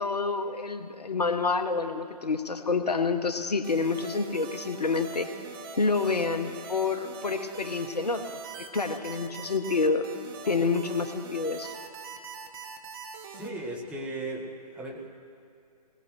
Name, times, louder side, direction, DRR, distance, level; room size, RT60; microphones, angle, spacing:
voice 1, 0.0-5.3 5.8-8.3 8.6-10.1 10.4-11.7, left 4 dB, 70° left, 8 dB, 1.0 m, -28 dB
sound 1, 3.6-13.5, right 5 dB, 35° right, 1.2 m, -42 dB
voice 2, 13.3-15.1, right 2 dB, 5° right, -2 dB, 1.2 m, -37 dB
21.5 x 19.5 x 3.1 m, 2.4 s
figure-of-eight pair, 130°, 21 cm